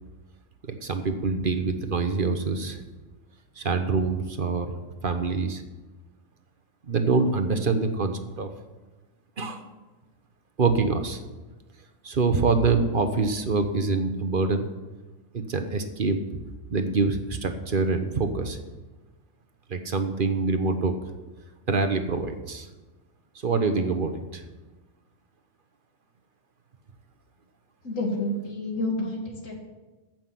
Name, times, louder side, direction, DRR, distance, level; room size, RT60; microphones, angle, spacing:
voice 1, 0.8-2.8 3.6-4.7 5.0-5.6 6.9-8.5 9.4-9.6 10.6-11.2 12.0-14.6 15.3-16.2 16.7-18.6 19.7-20.9 21.7-22.7 23.4-24.4, right 4 dB, 45° right, 7 dB, 1.1 m, -25 dB
voice 2, 27.8-29.6, left 1 dB, 80° left, 1 dB, 2.5 m, -29 dB
14.0 x 6.1 x 7.6 m, 1.2 s
omnidirectional pair, 1.3 m